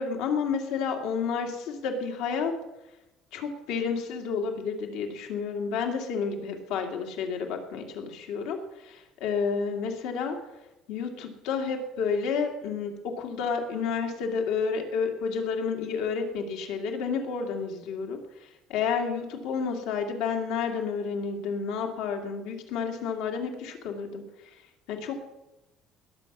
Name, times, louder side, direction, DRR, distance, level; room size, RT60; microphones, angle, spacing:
voice 1, 0.0-2.5 3.3-10.4 10.9-18.2 18.7-24.2 24.9-25.2, left 5 dB, 85° left, 4 dB, 2.2 m, -30 dB
20.0 x 7.1 x 6.1 m, 0.97 s
cardioid pair, 170°, 0 cm